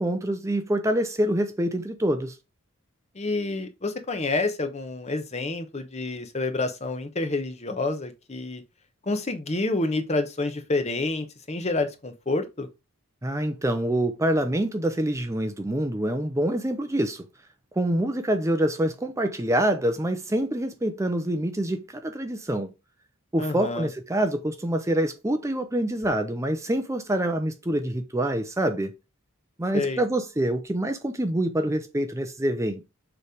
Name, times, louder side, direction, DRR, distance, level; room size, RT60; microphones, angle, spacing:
voice 1, 0.0-2.4 13.2-17.2 17.8-22.7 23.3-28.9 29.6-32.8, right 1 dB, 15° right, 0.6 m, -26 dB
voice 2, 3.1-8.6 9.1-12.7 23.4-23.9 29.7-30.0, left 2 dB, 30° left, 0.9 m, -28 dB
6.8 x 3.3 x 5.0 m
head